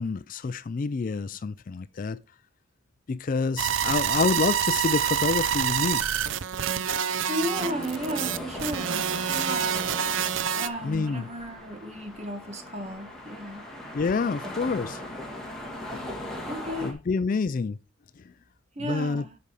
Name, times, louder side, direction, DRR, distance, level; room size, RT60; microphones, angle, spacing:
voice 1, 0.0-2.2 3.1-6.1 10.8-11.3 13.9-15.0 15.9-16.0 16.8-17.8 18.2-18.3 18.8-19.2, left 4 dB, 40° left, 0.3 m, -28 dB
sound 1, 3.6-10.7, right 8 dB, 65° right, 0.6 m, -27 dB
voice 2, 7.3-9.8 10.5-13.6 16.5-17.0 18.7-19.4, equal, 30° right, 1.5 m, -34 dB
sound 2, 7.5-16.9, left 1 dB, ahead, 1.8 m, -39 dB
8.3 x 5.3 x 4.8 m
head